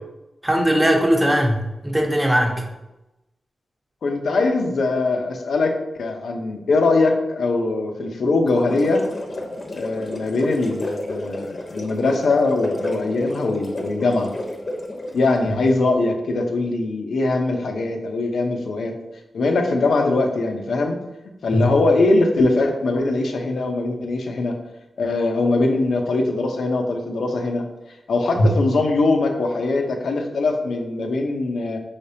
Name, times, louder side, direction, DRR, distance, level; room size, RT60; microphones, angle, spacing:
voice 1, 0.4-2.7 21.5-21.7 28.4-28.5, equal, 20° right, 1 dB, 0.9 m, -19 dB
voice 2, 4.0-5.7 6.0-9.1 9.7-14.3 15.1-18.9 19.3-21.0 21.4-24.5 25.0-27.6 28.1-31.8, left 3 dB, 80° left, 3 dB, 0.6 m, -21 dB
sound 1, 8.5-15.3, left 1 dB, 40° left, 0.9 m, -32 dB
5.6 x 3.4 x 2.7 m, 0.97 s
cardioid pair, 60°, 0 cm